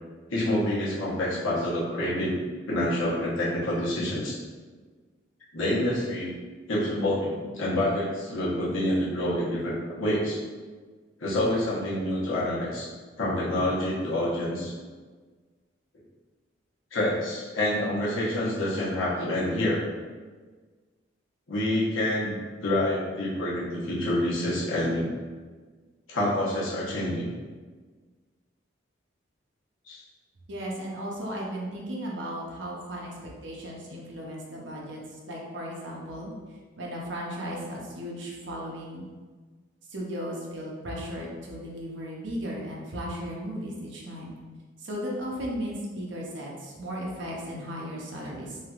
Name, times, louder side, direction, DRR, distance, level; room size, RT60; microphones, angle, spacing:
voice 1, 0.3-2.4 2.7-4.3 5.5-6.3 6.7-10.4 11.2-12.9 13.2-14.7 16.9-19.8 21.5-25.1 26.1-27.3 29.9-30.0, left 1 dB, 90° left, -7 dB, 1.0 m, -27 dB
voice 2, 30.5-36.3 36.8-39.0 39.9-44.4 44.8-48.6, equal, 70° right, -2 dB, 0.6 m, -36 dB
3.2 x 2.8 x 2.4 m, 1.4 s
head